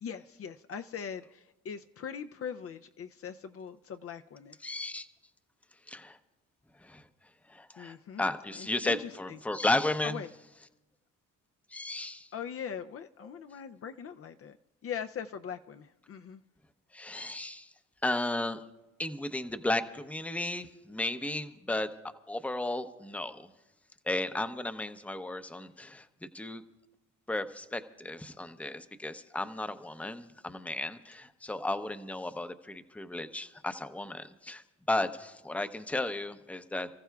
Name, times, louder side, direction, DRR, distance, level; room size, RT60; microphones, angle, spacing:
voice 1, 0.0-4.6 7.8-8.2 8.5-9.4 10.0-10.3 12.3-14.6 14.8-16.4, left 7 dB, 50° left, 7 dB, 0.5 m, -41 dB
voice 2, 4.6-5.1 5.9-6.2 6.8-7.0 7.5-10.2 11.7-12.3 16.9-17.7 18.0-18.6 19.0-21.9 22.3-23.5 24.0-26.1 26.3-26.6 27.3-36.9, left 2 dB, 5° left, 9 dB, 0.7 m, -34 dB
29.5 x 14.5 x 2.3 m, 1.0 s
cardioid pair, 90°, 30 cm